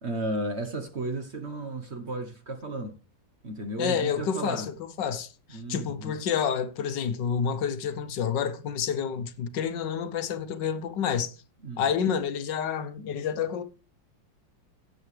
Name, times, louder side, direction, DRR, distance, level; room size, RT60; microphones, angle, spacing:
voice 1, 0.0-3.0 3.4-4.7 5.5-6.1 11.6-11.8, right 2 dB, 40° right, 1.2 m, -34 dB
voice 2, 3.8-11.3 11.8-13.6, left 7 dB, 70° left, 1.4 m, -29 dB
16.5 x 7.8 x 3.3 m
omnidirectional pair, 2.1 m